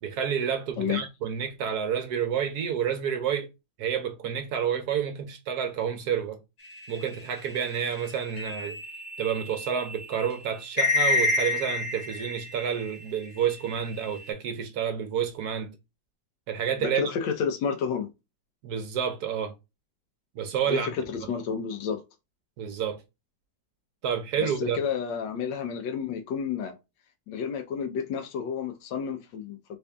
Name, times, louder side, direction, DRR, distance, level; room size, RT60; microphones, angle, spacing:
voice 1, 0.0-3.5 3.8-6.4 6.9-8.8 9.2-15.7 16.5-17.0 18.6-19.5 20.3-21.0 22.6-23.0 24.0-24.8, right 8 dB, 70° right, 1.1 m, -29 dB
sound 1, 6.7-13.0 13.4-14.3, left 2 dB, 25° left, 1.0 m, -30 dB
voice 2, 16.9-18.1 20.7-22.0 24.4-26.8 27.3-29.8, left 6 dB, 85° left, 1.3 m, -30 dB
3.4 x 2.5 x 3.3 m
omnidirectional pair, 1.9 m